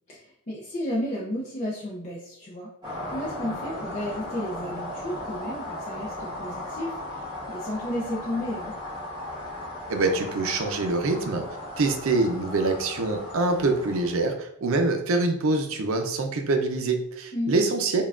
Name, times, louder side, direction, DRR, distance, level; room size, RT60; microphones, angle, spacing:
voice 1, 0.1-2.7 3.1-8.8 17.3-17.6, left 1 dB, 35° left, -4 dB, 0.5 m, -33 dB
sound 1, 2.8-14.3, left 1 dB, 20° right, 1.1 m, -36 dB
voice 2, 9.9-11.4 11.8-18.0, right 3 dB, 65° right, 6 dB, 0.5 m, -25 dB
5.4 x 2.3 x 2.5 m, 0.80 s
head